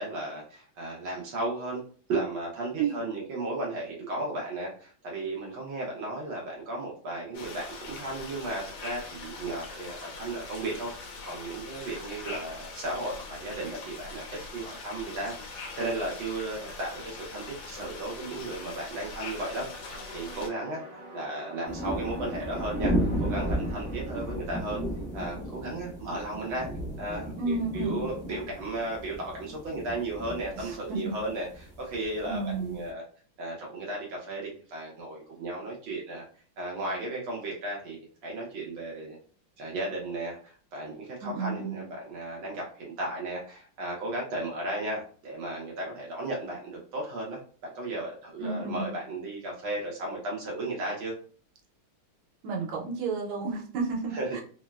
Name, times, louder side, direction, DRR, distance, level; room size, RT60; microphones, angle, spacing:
voice 1, 0.0-1.8 2.1-10.9 11.2-14.2 14.5-20.8 21.1-24.8 25.1-26.7 27.0-33.0 33.4-36.2 36.6-39.2 39.6-47.4 47.7-51.1 54.1-54.3, right 2 dB, 70° right, -3 dB, 1.4 m, -35 dB
sound 1, 7.3-20.5, left 3 dB, 75° left, 1.4 m, -42 dB
sound 2, 18.7-25.7, right 1 dB, 50° right, 1.2 m, -48 dB
sound 3, 21.7-32.9, right 1 dB, 25° right, 0.5 m, -34 dB
voice 2, 27.4-28.1 30.5-31.1 32.3-32.8 41.2-41.8 48.4-48.9 52.4-54.4, right 4 dB, 90° right, -1 dB, 1.7 m, -32 dB
3.8 x 2.1 x 2.3 m, 0.43 s
omnidirectional pair, 2.3 m